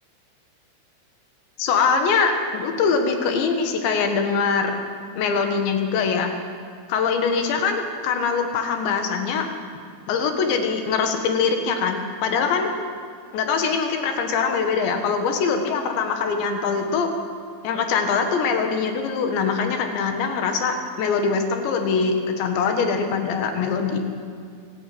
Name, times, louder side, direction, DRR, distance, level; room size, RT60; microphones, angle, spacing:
voice 1, 1.6-4.8 5.2-6.3 6.9-9.5 10.1-12.7 13.3-17.1 17.6-24.0, left 5 dB, 75° left, 5 dB, 3.9 m, -23 dB
26.5 x 11.5 x 8.6 m, 2.3 s
omnidirectional pair, 5.4 m